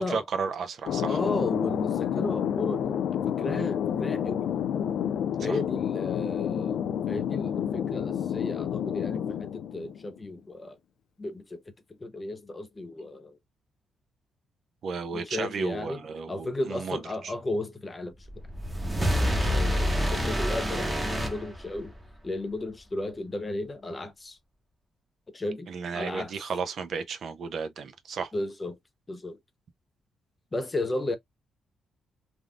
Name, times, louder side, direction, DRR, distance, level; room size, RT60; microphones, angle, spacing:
voice 1, 0.0-1.2 5.4-5.6 14.8-17.0 17.2-17.3 19.2-19.3 25.7-28.3, right 5 dB, 55° right, 0.5 m, -33 dB
Thunder, 0.9-10.2, left 9 dB, 75° left, 0.3 m, -29 dB
voice 2, 1.1-3.0 3.4-4.5 5.4-10.8 11.2-11.6 12.0-13.4 15.1-16.0 16.3-18.1 19.2-21.9 22.2-24.4 25.3-26.3 28.3-28.8 29.1-29.4 30.5-31.2, left 2 dB, 20° left, 0.6 m, -34 dB
sound 1, 18.3-22.1, equal, 15° right, 0.9 m, -27 dB
3.4 x 2.4 x 2.4 m
cardioid pair, 125°, 0 cm